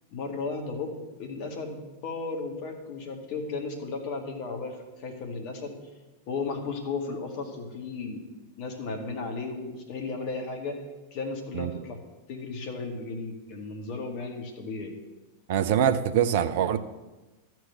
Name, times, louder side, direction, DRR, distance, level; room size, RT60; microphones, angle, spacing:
voice 1, 0.1-5.8 6.3-8.2 8.6-10.8 11.1-12.0 12.3-14.9, left 4 dB, 45° left, 3 dB, 2.0 m, -35 dB
voice 2, 15.5-16.8, right 9 dB, 50° right, 10 dB, 0.6 m, -24 dB
12.5 x 4.6 x 7.8 m, 1.1 s
figure-of-eight pair, 90°, 0 cm